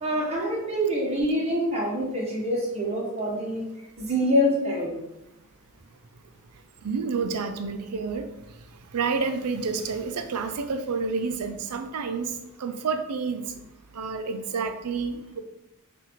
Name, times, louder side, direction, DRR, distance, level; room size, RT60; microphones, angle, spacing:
voice 1, 0.0-3.6 4.0-5.0, equal, 30° right, -5 dB, 1.0 m, -25 dB
voice 2, 6.8-8.3 8.9-12.3 12.6-13.4 13.9-15.4, right 5 dB, 90° right, 7 dB, 0.5 m, -29 dB
5.7 x 2.6 x 3.0 m, 0.90 s
head